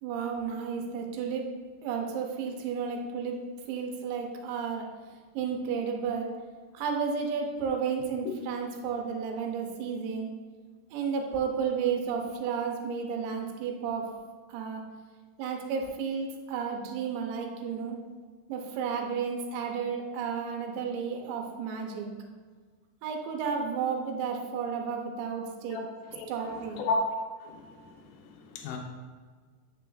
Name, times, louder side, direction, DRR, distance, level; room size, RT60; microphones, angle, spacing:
voice 1, 0.0-1.5 1.8-4.9 5.4-6.3 6.7-10.3 10.9-14.1 14.5-14.8 15.4-18.0 18.5-22.1 23.0-25.8 26.3-26.8, right 6 dB, 90° right, 2 dB, 2.9 m, -32 dB
voice 2, 26.1-28.8, left 3 dB, 85° left, 2 dB, 2.1 m, -34 dB
9.1 x 6.3 x 2.5 m, 1.5 s
omnidirectional pair, 5.1 m